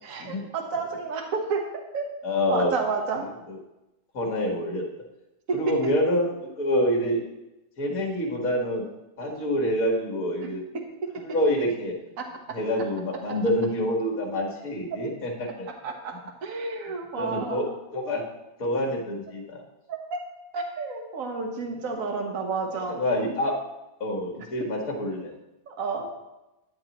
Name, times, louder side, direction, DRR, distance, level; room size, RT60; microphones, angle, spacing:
voice 1, 0.0-2.0 2.5-3.3 5.5-5.8 10.7-11.2 12.2-12.6 15.7-17.7 19.9-20.2 20.5-23.0 25.7-26.1, right 4 dB, 55° right, 2 dB, 1.5 m, -31 dB
voice 2, 2.2-2.8 3.5-3.6 4.1-4.8 5.5-7.2 7.8-8.8 9.2-10.6 11.2-11.9 12.5-15.7 17.2-17.7 17.9-18.2 18.6-19.6 22.9-23.5 24.0-25.3, equal, 55° left, -1 dB, 2.0 m, -26 dB
9.8 x 9.7 x 3.0 m, 0.96 s
omnidirectional pair, 1.9 m